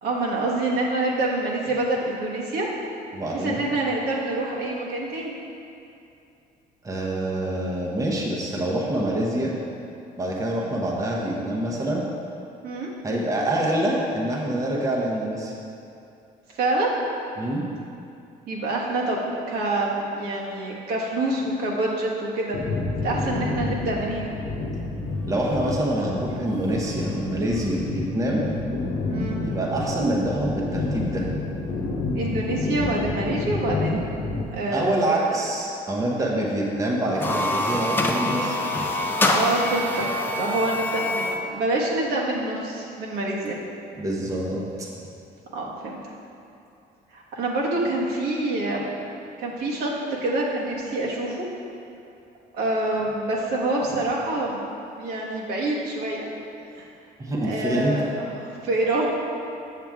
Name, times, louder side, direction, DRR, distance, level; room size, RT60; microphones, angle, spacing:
voice 1, 0.0-2.7 3.3-5.3 12.6-12.9 16.5-16.9 18.5-22.6 23.0-24.3 29.1-29.4 32.1-34.1 34.5-35.0 39.2-40.0 40.3-43.6 45.5-46.0 47.1-48.9 49.4-49.9 50.2-51.4 52.5-54.6 54.9-56.3 56.8-56.9 57.4-59.1, right 2 dB, 75° right, -4 dB, 1.4 m, -26 dB
voice 2, 3.1-3.6 6.8-9.5 10.2-12.1 13.0-15.5 17.4-17.6 25.3-28.4 29.4-31.3 34.7-38.6 44.0-44.9 57.2-57.9, right 1 dB, 20° right, -3 dB, 0.9 m, -26 dB
sound 1, 22.5-34.4, left 2 dB, 75° left, 0.9 m, -29 dB
sound 2, 37.0-41.5, left 1 dB, 10° left, 0.5 m, -25 dB
7.4 x 6.9 x 3.5 m, 2.6 s
cardioid pair, 110°, 17 cm